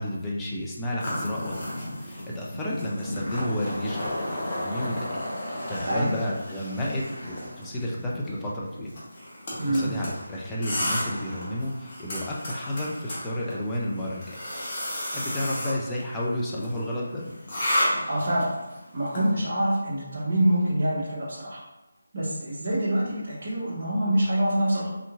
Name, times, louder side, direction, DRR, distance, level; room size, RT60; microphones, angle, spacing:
voice 1, 0.0-5.2 5.5-8.9 9.7-14.4 15.1-17.3, left 1 dB, 10° left, -5 dB, 0.4 m, -31 dB
sound 1, 1.0-19.3, left 1 dB, 35° left, 1.0 m, -33 dB
voice 2, 9.6-9.9 18.1-18.5 18.9-21.6 22.1-24.9, right 1 dB, 40° right, -8 dB, 0.9 m, -25 dB
3.5 x 2.9 x 2.4 m, 1.0 s
figure-of-eight pair, 155°, 0 cm